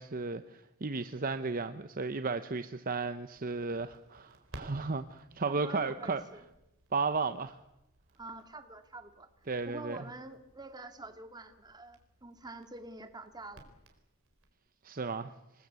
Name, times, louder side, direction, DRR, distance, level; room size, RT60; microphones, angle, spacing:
voice 1, 0.0-6.2 6.9-7.6 9.5-10.0 14.8-15.3, right 4 dB, 40° right, 10 dB, 0.8 m, -34 dB
Crackle, 3.3-14.5, right 1 dB, 60° right, 4.3 m, -57 dB
voice 2, 5.5-6.4 8.2-9.3 9.7-13.7, right 2 dB, 20° right, 7 dB, 2.0 m, -47 dB
28.0 x 20.0 x 8.3 m, 0.93 s
head